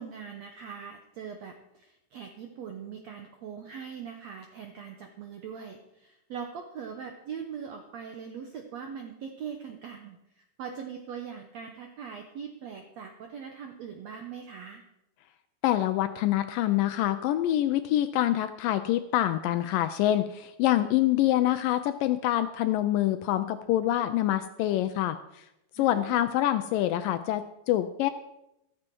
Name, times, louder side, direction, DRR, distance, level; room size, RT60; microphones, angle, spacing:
voice 1, 0.0-14.8 25.8-26.2, right 7 dB, 80° right, 4 dB, 1.5 m, -41 dB
voice 2, 15.6-25.2 25.8-28.1, left 13 dB, 80° left, 10 dB, 2.0 m, -26 dB
14.0 x 13.0 x 4.6 m, 0.86 s
omnidirectional pair, 4.4 m